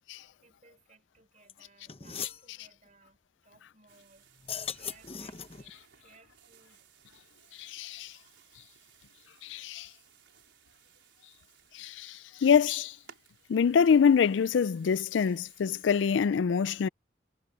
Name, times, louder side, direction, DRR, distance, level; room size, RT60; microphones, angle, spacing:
voice 1, 0.3-4.3 4.7-6.9 9.1-9.2 10.3-10.4, right 3 dB, 40° right, 5.6 m, -62 dB
sound 1, 1.5-1.6 1.9-2.4 4.4-5.7, left 7 dB, 30° left, 1.0 m, -38 dB
sound 2, 3.9-15.9, right 8 dB, 80° right, 4.8 m, -61 dB
voice 2, 7.6-8.1 9.4-9.9 11.8-12.9 13.5-16.9, left 6 dB, 80° left, 0.4 m, -25 dB
head